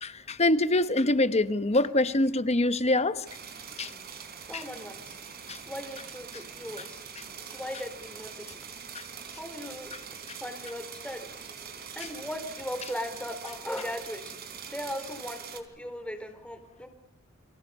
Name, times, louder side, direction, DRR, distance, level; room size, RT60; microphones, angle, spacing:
voice 1, 0.0-3.2 3.8-3.9 4.5-4.6 5.5-5.6 8.9-9.0 10.3-10.4, left 2 dB, 30° left, 1.1 m, -25 dB
sound 1, 3.2-15.6, right 7 dB, 50° right, 3.5 m, -43 dB
voice 2, 4.4-5.2 5.7-7.0 7.5-8.6 9.3-9.9 10.4-11.3 11.8-14.4 14.7-16.9, left 1 dB, 5° left, 3.6 m, -38 dB
29.5 x 25.5 x 5.5 m
head